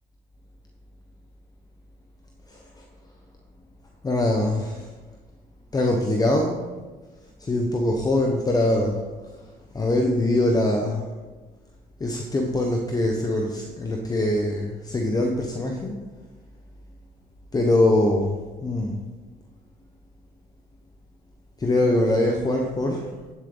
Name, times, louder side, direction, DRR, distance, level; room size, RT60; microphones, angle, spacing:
voice 1, 2.5-2.8 4.0-4.9 5.7-6.6 7.4-9.0 9.4-11.1 12.0-15.9 17.5-19.0 21.6-23.1, left 1 dB, 20° left, 1 dB, 1.0 m, -23 dB
10.0 x 7.6 x 3.9 m, 1.2 s
cardioid pair, 110°, 17 cm